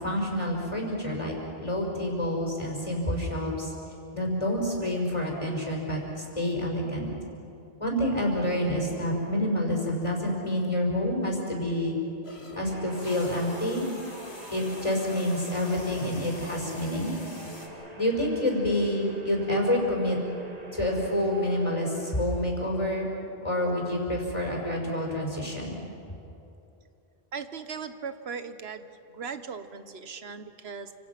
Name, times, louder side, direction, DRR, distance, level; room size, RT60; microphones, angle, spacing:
voice 1, 0.0-3.7 4.1-7.1 7.8-12.0 12.5-13.9 14.5-17.1 18.0-20.2 20.7-23.1 23.4-25.8, left 1 dB, 30° left, -1 dB, 5.2 m, -28 dB
sound 1, 12.2-17.7, left 1 dB, 85° left, 3.4 m, -46 dB
sound 2, 12.6-22.9, right 1 dB, 40° right, 2.4 m, -45 dB
voice 2, 27.3-28.9 29.1-30.9, right 6 dB, 85° right, 9 dB, 1.3 m, -38 dB
29.5 x 26.5 x 6.0 m, 2.8 s
omnidirectional pair, 1.0 m